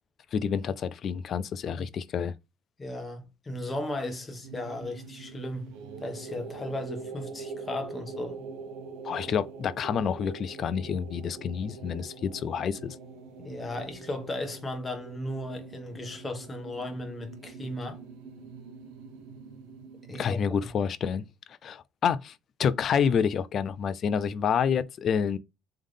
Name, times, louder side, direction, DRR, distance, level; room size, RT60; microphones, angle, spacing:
voice 1, 0.3-2.3 9.0-13.0 20.2-21.2 21.6-22.3 22.6-25.4, left 7 dB, 45° left, 0.4 m, -28 dB
voice 2, 2.8-8.4 13.4-18.0 20.1-20.4, left 1 dB, 20° left, 1.3 m, -36 dB
sound 1, 4.4-20.7, right 4 dB, 90° right, 0.9 m, -44 dB
3.6 x 3.3 x 3.6 m
cardioid pair, 115°, 0 cm